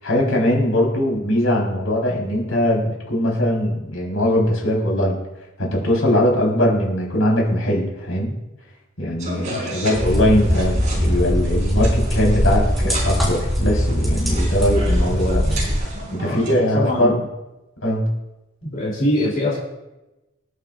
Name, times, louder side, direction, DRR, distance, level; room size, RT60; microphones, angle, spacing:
voice 1, 0.0-5.2 5.6-8.3 9.0-15.6 16.1-17.2 17.8-18.1, left 1 dB, 85° left, -2 dB, 4.3 m, -21 dB
sound 1, 9.2-16.6, right 2 dB, 35° right, 4.1 m, -34 dB
voice 2, 9.5-9.9 15.4-15.7 16.2-16.4 16.7-17.1 18.6-19.6, left 1 dB, 45° left, -4 dB, 3.2 m, -23 dB
sound 2, 9.9-15.8, equal, ahead, 4.6 m, -20 dB
26.5 x 9.0 x 2.5 m, 1.0 s
head